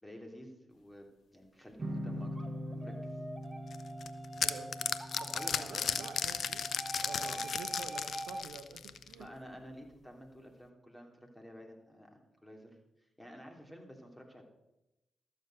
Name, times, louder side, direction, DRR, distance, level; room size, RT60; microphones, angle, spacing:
voice 1, 0.0-2.4 2.7-3.2 5.3-6.1 7.2-7.4 9.1-14.4, equal, 15° left, 2 dB, 3.1 m, -51 dB
sound 1, 1.8-9.0, equal, 45° right, 1.2 m, -44 dB
sound 2, 2.4-8.4, right 1 dB, 10° right, 1.3 m, -44 dB
sound 3, 3.7-9.2, left 7 dB, 70° left, 0.6 m, -35 dB
voice 2, 4.4-4.7 5.2-6.7 7.0-9.3, right 6 dB, 85° right, 10 dB, 0.7 m, -49 dB
13.0 x 7.0 x 6.5 m, 0.94 s
supercardioid pair, 40°, 0 cm